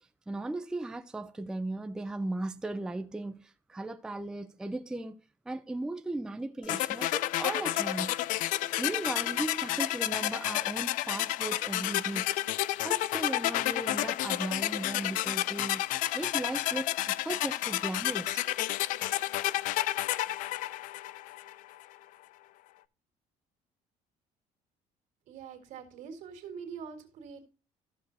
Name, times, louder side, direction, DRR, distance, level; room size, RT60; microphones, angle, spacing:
voice 1, 0.3-5.2 5.5-8.2 8.8-15.8 16.1-18.5, right 2 dB, 5° right, 0.4 m, -37 dB
sound 1, 6.7-21.6, left 15 dB, 70° left, 0.4 m, -31 dB
voice 2, 25.3-27.5, right 6 dB, 65° right, 2.1 m, -44 dB
14.0 x 6.2 x 2.6 m
cardioid pair, 160°, 14 cm